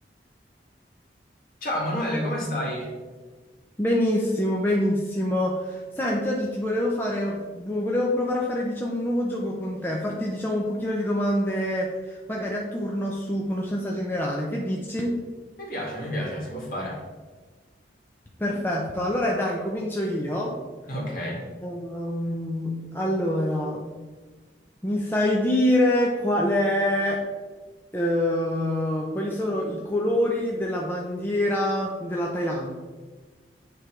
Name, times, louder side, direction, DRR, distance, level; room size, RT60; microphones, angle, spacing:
voice 1, 1.6-2.9 15.6-17.0 20.9-21.4, equal, 50° left, -3 dB, 1.8 m, -29 dB
voice 2, 3.8-15.1 18.4-20.5 21.6-23.9 24.8-27.2 27.9-32.7, left 1 dB, 10° left, -3 dB, 0.5 m, -26 dB
8.0 x 3.3 x 4.4 m, 1.3 s
head